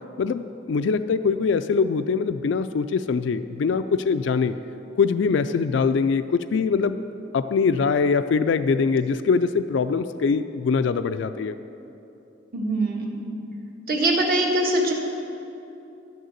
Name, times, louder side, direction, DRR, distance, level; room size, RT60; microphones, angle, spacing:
voice 1, 0.2-4.6 5.0-7.0 7.3-11.5, left 5 dB, 65° left, 11 dB, 0.3 m, -23 dB
voice 2, 12.5-13.3 13.9-14.9, right 1 dB, 50° right, 0 dB, 1.5 m, -23 dB
11.5 x 6.5 x 7.9 m, 2.9 s
head